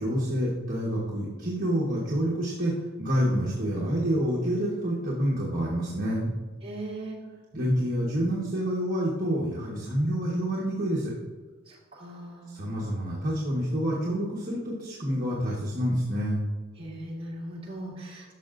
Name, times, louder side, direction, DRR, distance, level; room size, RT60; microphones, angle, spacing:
voice 1, 0.0-6.3 7.5-11.1 12.5-16.4, equal, 40° right, -6 dB, 1.2 m, -28 dB
voice 2, 6.6-7.2 11.7-12.5 16.8-18.3, right 1 dB, 25° right, -7 dB, 2.6 m, -39 dB
12.0 x 6.6 x 2.5 m, 1.4 s
head